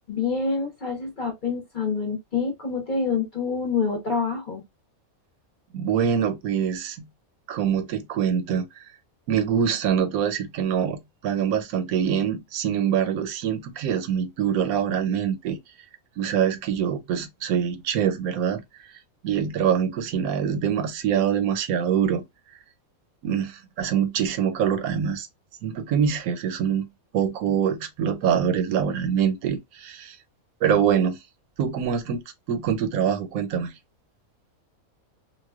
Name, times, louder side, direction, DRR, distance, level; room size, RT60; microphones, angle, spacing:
voice 1, 0.1-4.6, left 5 dB, 45° left, 0.7 m, -27 dB
voice 2, 5.7-7.0 7.5-8.8 9.3-11.0 11.2-15.6 16.2-18.6 19.2-22.2 23.2-25.3 25.6-26.9 27.1-30.2 30.6-31.2 31.6-32.2 32.5-33.7, right 8 dB, 85° right, 1.1 m, -24 dB
2.4 x 2.2 x 3.4 m
omnidirectional pair, 1.5 m